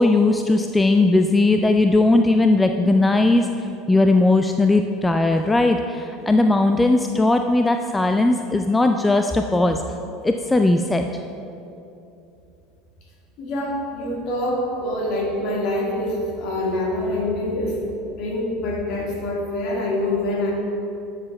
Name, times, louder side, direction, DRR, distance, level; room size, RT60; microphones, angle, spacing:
voice 1, 0.0-3.5 3.9-9.8 10.2-11.0, left 2 dB, 10° left, 5 dB, 0.3 m, -18 dB
voice 2, 13.4-17.8 18.2-20.5, left 1 dB, 55° left, -2 dB, 1.8 m, -25 dB
11.5 x 6.8 x 2.3 m, 2.8 s
hypercardioid pair, 75°, 0 cm